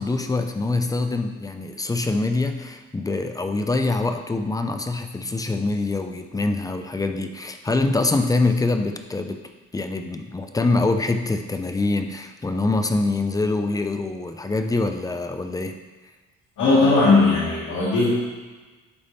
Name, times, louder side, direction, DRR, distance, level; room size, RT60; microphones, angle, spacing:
voice 1, 0.0-9.4 9.7-15.7, left 3 dB, 10° left, 6 dB, 0.4 m, -24 dB
voice 2, 16.6-18.1, left 3 dB, 75° left, -10 dB, 2.4 m, -18 dB
11.0 x 4.1 x 3.5 m, 1.3 s
cardioid pair, 145°, 30 cm